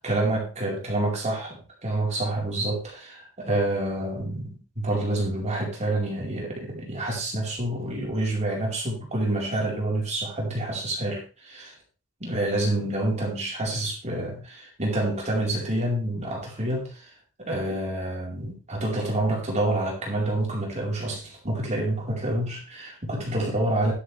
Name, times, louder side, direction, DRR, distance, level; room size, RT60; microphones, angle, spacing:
voice 1, 0.0-11.7 12.2-17.1 17.4-23.9, right 1 dB, 30° right, -2 dB, 4.7 m, -28 dB
11.5 x 10.0 x 3.5 m, 0.33 s
head